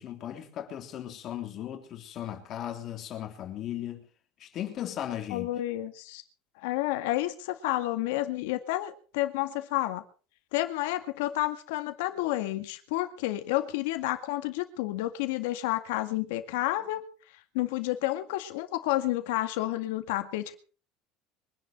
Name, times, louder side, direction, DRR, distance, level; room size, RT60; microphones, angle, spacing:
voice 1, 0.0-4.1 4.4-5.5, left 11 dB, 35° left, 3.4 m, -37 dB
voice 2, 5.3-6.2 6.6-10.0 10.5-17.0 17.5-20.5, left 16 dB, 85° left, 1.9 m, -30 dB
23.5 x 11.0 x 4.5 m
cardioid pair, 170°, 0 cm